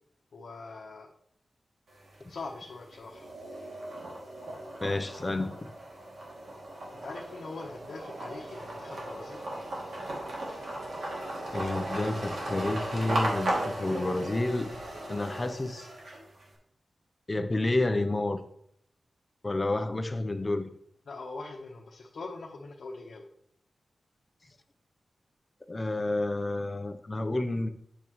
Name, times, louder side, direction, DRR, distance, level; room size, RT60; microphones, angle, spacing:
voice 1, 0.3-1.1 2.3-3.3 6.9-9.4 21.1-23.3, left 3 dB, 80° left, -2 dB, 1.0 m, -42 dB
sound 1, 1.9-2.5 2.9-16.4, right 1 dB, 80° right, 2.4 m, -36 dB
voice 2, 4.8-5.7 11.5-14.7 15.1-15.9 17.3-18.4 19.4-20.7 25.7-27.7, left 2 dB, 25° left, 8 dB, 0.7 m, -30 dB
8.4 x 6.9 x 3.1 m, 0.70 s
wide cardioid pair, 115°, 0 cm